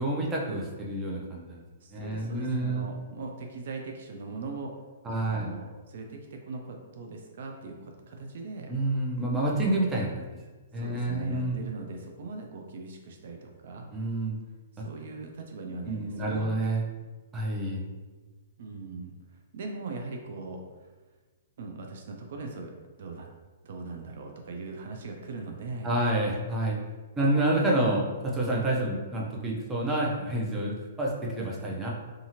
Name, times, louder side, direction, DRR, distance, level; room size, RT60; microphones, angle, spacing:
voice 1, 0.0-1.6 1.9-2.9 5.0-5.5 8.7-10.4 10.7-11.6 13.9-14.4 14.8-14.9 15.8-16.8 17.3-17.8 25.8-26.8 27.2-31.9, right 1 dB, 15° right, -3 dB, 0.6 m, -28 dB
voice 2, 1.8-4.8 5.1-8.7 10.8-13.8 14.7-16.5 18.6-19.1 19.5-20.9 21.6-22.7 23.0-23.3 23.6-26.0, right 3 dB, 65° right, 2 dB, 0.4 m, -40 dB
2.6 x 2.4 x 2.8 m, 1.3 s
hypercardioid pair, 135°, 0 cm